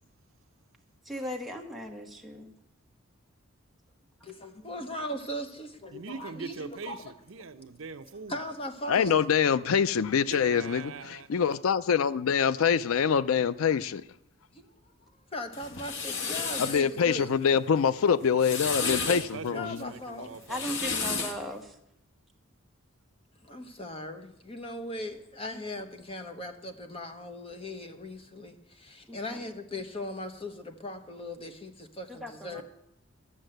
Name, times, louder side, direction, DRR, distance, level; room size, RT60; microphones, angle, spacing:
voice 1, 1.0-2.5 20.5-21.7 25.5-25.6 29.1-29.4 32.1-32.6, equal, ahead, 1.3 m, -38 dB
voice 2, 4.2-7.1 8.3-9.2 14.5-14.7 15.0-17.3 18.8-19.2 19.5-20.4 23.4-32.6, left 1 dB, 25° left, 1.1 m, -39 dB
voice 3, 5.9-8.4 10.3-11.3 18.8-20.8 32.6-32.7, right 4 dB, 65° right, 0.7 m, -42 dB
voice 4, 8.9-14.0 16.6-19.8, left 7 dB, 75° left, 0.4 m, -25 dB
sound 1, 15.5-16.8 18.2-19.3 20.3-21.4, left 5 dB, 55° left, 1.2 m, -32 dB
12.5 x 7.3 x 7.8 m
head